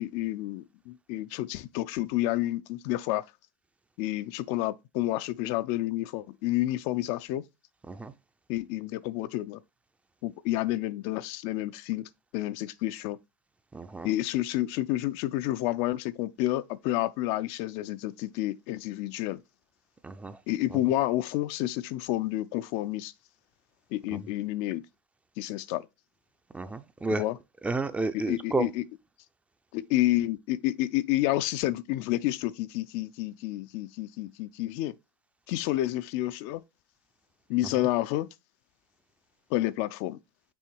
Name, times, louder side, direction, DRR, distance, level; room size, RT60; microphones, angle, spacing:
voice 1, 0.0-3.2 4.0-7.4 8.5-9.6 10.2-13.2 14.0-19.4 20.5-23.1 23.9-24.8 25.4-25.9 27.1-27.4 28.3-28.8 29.7-34.9 35.5-36.6 37.5-38.3 39.5-40.2, left 15 dB, 55° left, 0.4 m, -29 dB
voice 2, 13.7-14.1 20.0-20.4 20.7-20.8 24.1-24.2 26.5-27.2 27.6-28.7, right 3 dB, 10° right, 0.4 m, -31 dB
6.1 x 3.4 x 4.6 m
hypercardioid pair, 110°, 12 cm